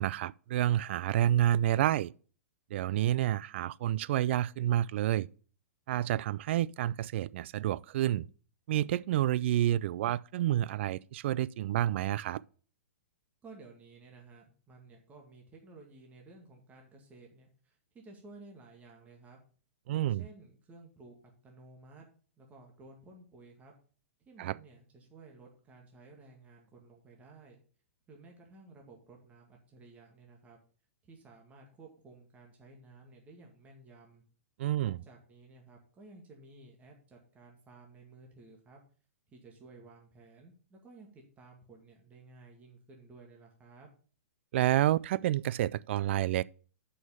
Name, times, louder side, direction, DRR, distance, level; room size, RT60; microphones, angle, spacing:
voice 1, 0.0-2.1 2.7-5.3 5.9-8.3 8.7-12.4 19.9-20.3 24.4-24.6 34.6-35.0 44.5-46.4, right 13 dB, 60° right, 0.3 m, -29 dB
voice 2, 13.4-19.4 19.9-22.1 22.4-23.7 24.2-27.6 28.1-30.6 31.0-34.2 34.8-38.8 39.3-43.9, right 3 dB, 20° right, 2.0 m, -55 dB
6.4 x 5.6 x 7.0 m
hypercardioid pair, 125°, 7 cm